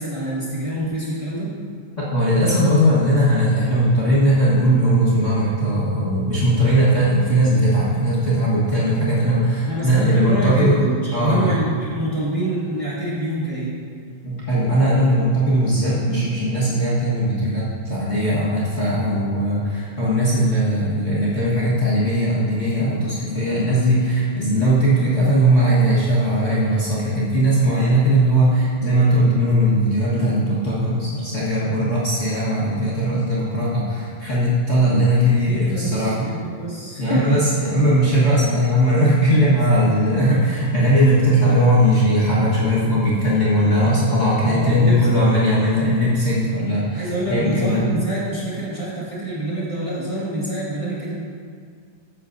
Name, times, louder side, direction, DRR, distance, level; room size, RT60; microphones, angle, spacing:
voice 1, 0.0-1.5 9.6-13.8 35.4-37.3 44.4-45.3 46.9-51.1, right 1 dB, 45° right, -9 dB, 0.4 m, -26 dB
voice 2, 2.0-10.8 11.1-11.6 14.2-36.3 37.0-47.9, equal, 55° left, -9 dB, 0.8 m, -19 dB
13.5 x 8.4 x 2.7 m, 2.1 s
omnidirectional pair, 3.9 m